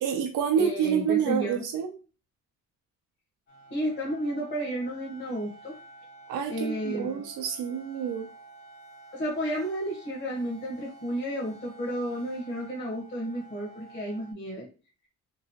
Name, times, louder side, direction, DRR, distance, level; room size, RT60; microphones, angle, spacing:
voice 1, 0.0-1.9 6.3-8.3, right 8 dB, 90° right, 4 dB, 0.5 m, -28 dB
voice 2, 0.6-1.6 3.7-5.7 6.5-7.2 9.1-14.7, equal, 40° left, -3 dB, 1.0 m, -32 dB
sound 1, 3.5-14.3, right 3 dB, 70° left, 1.2 m, -50 dB
3.0 x 2.6 x 2.8 m, 0.34 s
cardioid pair, 90°, 30 cm